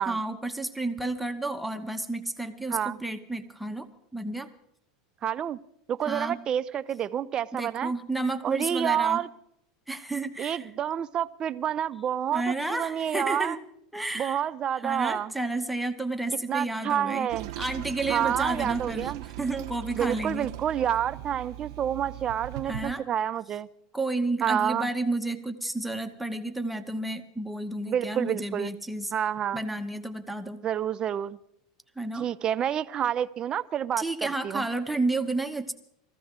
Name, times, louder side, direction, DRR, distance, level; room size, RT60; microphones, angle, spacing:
voice 1, 0.0-4.5 6.1-6.4 7.5-9.2 9.9-10.7 12.3-13.6 13.9-14.4 14.8-17.3 17.6-20.5 22.7-23.0 23.9-29.1 29.5-30.6 32.0-32.3 34.0-35.7, right 2 dB, ahead, 5 dB, 0.9 m, -31 dB
voice 2, 5.2-5.6 5.9-7.9 8.4-9.3 10.4-13.6 14.1-15.3 16.5-17.5 18.1-19.2 19.9-23.7 24.4-24.9 27.8-28.7 29.1-29.6 30.6-31.4 32.2-34.7, right 9 dB, 30° right, 13 dB, 0.5 m, -28 dB
Toilet flush, 17.3-22.9, right 16 dB, 70° right, 0.6 m, -39 dB
21.0 x 14.5 x 3.7 m, 0.75 s
supercardioid pair, 130°, 3 cm